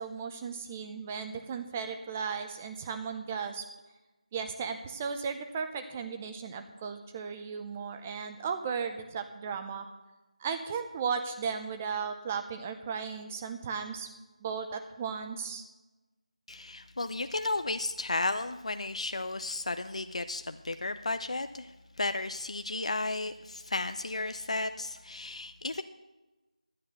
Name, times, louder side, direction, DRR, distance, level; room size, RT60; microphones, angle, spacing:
voice 1, 0.0-3.6 4.3-9.9 10.4-14.1 14.4-15.6, right 6 dB, 15° right, 7 dB, 0.6 m, -36 dB
voice 2, 16.5-25.8, left 2 dB, 60° left, 10 dB, 0.5 m, -34 dB
11.5 x 9.6 x 6.6 m, 1.1 s
figure-of-eight pair, 165°, 4 cm